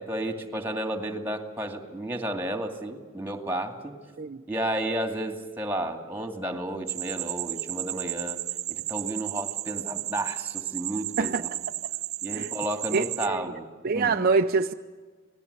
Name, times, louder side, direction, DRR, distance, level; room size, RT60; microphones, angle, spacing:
voice 1, 0.0-4.0 4.5-8.4 8.7-11.5 12.2-13.7 13.9-14.2, right 1 dB, 10° right, 2.4 m, -32 dB
sound 1, 6.9-13.3, right 15 dB, 75° right, 0.9 m, -33 dB
voice 2, 12.9-13.4 13.8-14.7, right 4 dB, 45° right, 0.6 m, -25 dB
27.0 x 18.5 x 8.2 m
head